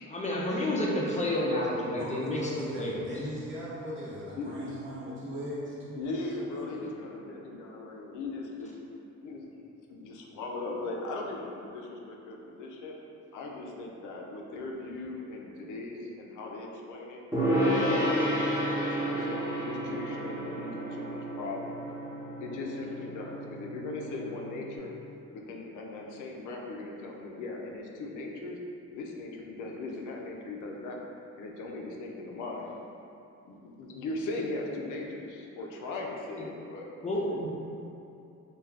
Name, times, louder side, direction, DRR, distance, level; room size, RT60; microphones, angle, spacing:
voice 1, 0.1-3.0 37.0-37.5, left 1 dB, 25° left, -4 dB, 0.4 m, -30 dB
voice 2, 2.0-6.2 6.5-6.6, equal, 40° right, -7 dB, 0.8 m, -38 dB
voice 3, 5.9-6.9 7.4-8.7 9.2-9.5 9.9-13.0 13.3-17.2 17.9-18.5 18.8-21.8 22.4-24.9 25.3-28.6 28.9-31.0 31.4-32.7 33.4-36.9, left 2 dB, 80° left, 0 dB, 0.5 m, -38 dB
Gong, 17.3-24.8, equal, 10° right, 0.8 m, -31 dB
2.4 x 2.3 x 3.2 m, 2.7 s
cardioid pair, 90°, 30 cm